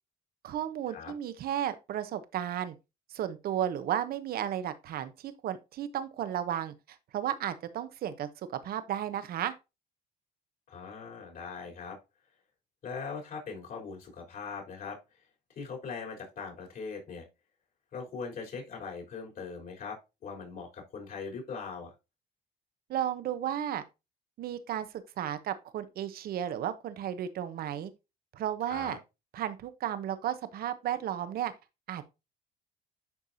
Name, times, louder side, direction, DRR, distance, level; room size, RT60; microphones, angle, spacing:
voice 1, 0.4-2.8 3.1-6.7 7.1-8.3 8.6-9.5 22.9-23.8 24.4-24.9 25.2-27.9 28.3-29.0 29.3-31.5 31.9-32.1, right 10 dB, 65° right, 1.0 m, -33 dB
voice 2, 10.7-12.0 12.8-15.0 15.6-17.3 17.9-21.9 28.7-29.0, left 5 dB, 55° left, 4.0 m, -40 dB
11.0 x 4.7 x 2.8 m
cardioid pair, 110°, 17 cm